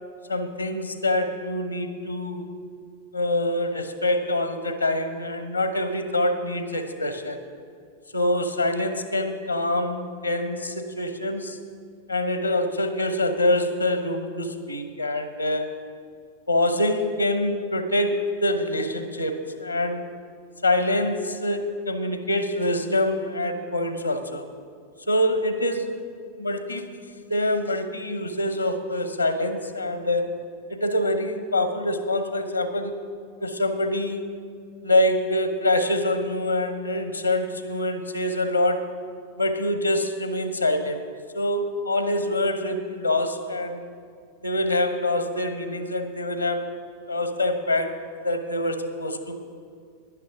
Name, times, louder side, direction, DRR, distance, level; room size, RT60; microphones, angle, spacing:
voice 1, 0.3-2.5 3.1-7.4 8.1-11.6 12.1-15.7 16.5-20.1 20.6-24.5 25.1-26.1 26.4-26.9 27.3-30.3 30.7-32.9 33.4-34.3 34.8-38.9 39.4-41.0 41.3-43.9 44.4-46.7 47.1-48.0 48.2-49.3, left 1 dB, 85° left, 9 dB, 1.0 m, -25 dB
11.0 x 10.5 x 6.0 m, 2.2 s
figure-of-eight pair, 90°, 0 cm